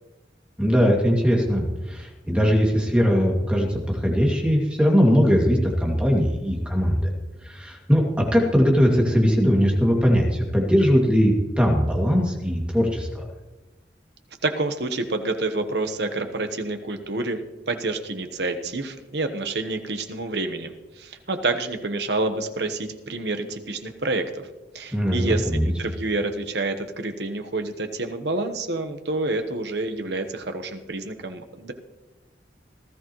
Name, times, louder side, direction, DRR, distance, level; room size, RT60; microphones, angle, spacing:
voice 1, 0.6-7.1 7.4-13.2 24.9-25.7, equal, 5° right, 0 dB, 2.3 m, -20 dB
voice 2, 14.4-24.5 24.7-31.7, right 2 dB, 65° right, 7 dB, 1.2 m, -28 dB
18.5 x 13.0 x 3.1 m, 1.1 s
head